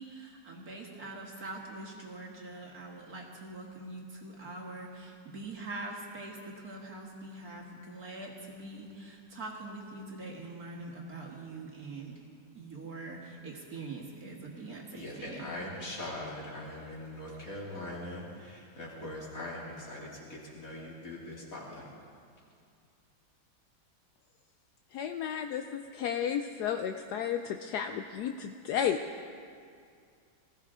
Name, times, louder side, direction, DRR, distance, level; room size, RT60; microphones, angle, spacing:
voice 1, 0.0-12.2 12.5-15.5, right 2 dB, 45° right, -1 dB, 2.0 m, -43 dB
voice 2, 14.9-21.8, left 1 dB, 40° left, -5 dB, 3.2 m, -41 dB
voice 3, 24.9-29.0, left 9 dB, 80° left, 7 dB, 0.9 m, -33 dB
20.0 x 15.5 x 3.7 m, 2.3 s
omnidirectional pair, 2.2 m